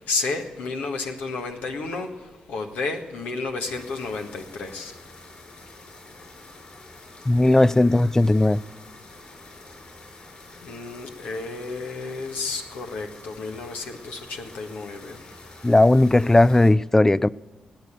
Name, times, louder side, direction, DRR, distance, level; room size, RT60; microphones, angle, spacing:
voice 1, 0.1-4.9 10.6-15.5, left 3 dB, 80° left, 1.5 m, -32 dB
sound 1, 3.6-16.7, left 2 dB, 55° left, 6.4 m, -47 dB
voice 2, 7.3-8.6 15.6-17.3, left 2 dB, 15° left, 0.4 m, -17 dB
17.5 x 9.2 x 8.3 m
supercardioid pair, 45°, 3 cm